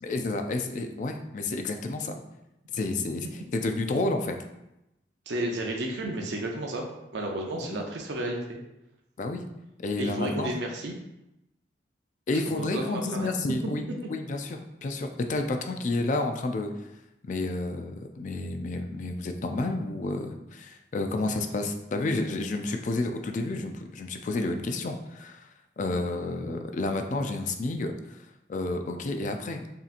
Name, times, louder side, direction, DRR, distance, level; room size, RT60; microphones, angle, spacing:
voice 1, 0.0-2.2 2.7-3.3 3.5-4.4 7.6-7.8 9.2-9.5 9.8-10.5 12.3-16.7 17.2-25.5 25.8-28.2 28.5-29.6, left 2 dB, 45° left, 5 dB, 0.4 m, -30 dB
voice 2, 5.3-8.6 10.0-10.9 12.5-13.3, right 1 dB, 85° right, 1 dB, 0.6 m, -32 dB
5.4 x 2.8 x 2.5 m, 0.90 s
head